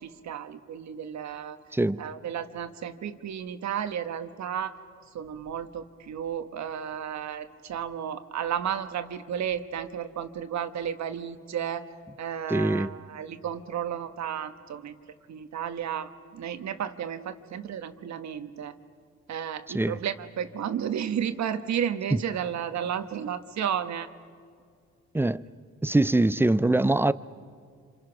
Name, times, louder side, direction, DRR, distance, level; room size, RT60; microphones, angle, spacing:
voice 1, 0.0-1.6 2.0-4.8 5.1-11.9 12.2-15.0 15.3-18.7 19.3-24.1, right 8 dB, 65° right, 1.3 m, -33 dB
voice 2, 1.7-2.0 12.5-12.9 19.7-20.0 22.1-22.2 25.1-25.4 25.8-27.1, right 2 dB, 10° right, 0.5 m, -23 dB
27.0 x 26.5 x 5.9 m
cardioid pair, 90°, 30 cm